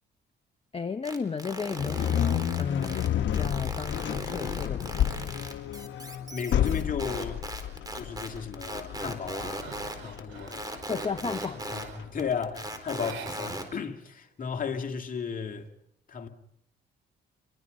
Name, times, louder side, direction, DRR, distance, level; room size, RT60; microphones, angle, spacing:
voice 1, 0.7-5.3 10.9-11.9, left 5 dB, 30° left, 0.8 m, -34 dB
sound 1, 1.0-3.1 3.3-11.8 12.2-13.6, right 2 dB, 20° right, 4.3 m, -37 dB
sound 2, 1.8-12.9, left 10 dB, 70° left, 1.1 m, -31 dB
voice 2, 6.0-7.5 7.9-10.7 11.7-15.7 16.1-16.3, left 6 dB, 45° left, 2.5 m, -35 dB
sound 3, 7.9-8.3 8.7-12.2 12.9-13.9 14.1-14.2 14.6-15.5, right 7 dB, 85° right, 4.6 m, -47 dB
28.0 x 24.0 x 5.4 m
cardioid pair, 90°, 20 cm